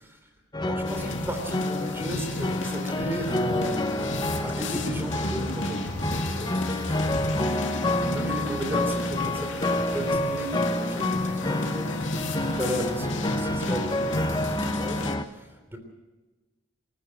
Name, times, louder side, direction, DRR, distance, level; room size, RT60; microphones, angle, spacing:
sound 1, 0.5-15.2, left 1 dB, 20° left, 0.8 m, -28 dB
voice 1, 0.6-5.8 6.1-6.6 7.0-7.2 8.1-15.8, right 1 dB, 10° right, 5 dB, 3.4 m, -35 dB
sound 2, 0.8-15.1, left 2 dB, 65° left, 2.6 m, -34 dB
27.0 x 14.0 x 7.7 m, 1.2 s
head